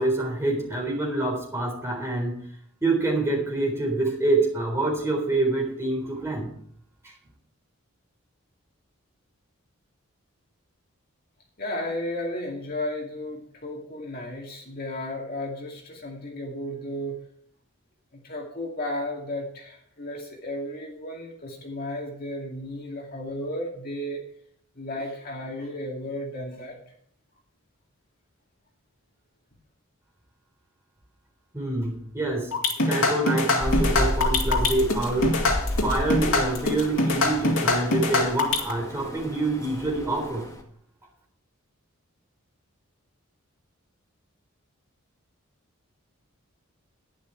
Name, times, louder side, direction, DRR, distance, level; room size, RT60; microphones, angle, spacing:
voice 1, 0.0-2.4 2.8-6.5 31.5-32.5 32.8-35.4 35.8-40.5, right 2 dB, 10° right, -1 dB, 3.8 m, -26 dB
voice 2, 11.6-17.2 18.2-24.2 24.8-26.7, left 1 dB, 45° left, 0 dB, 2.3 m, -34 dB
sound 1, 32.5-38.7, left 2 dB, 75° left, 2.4 m, -23 dB
Rain, 33.6-40.6, equal, 15° left, 2.0 m, -31 dB
11.5 x 10.5 x 4.7 m, 0.64 s
head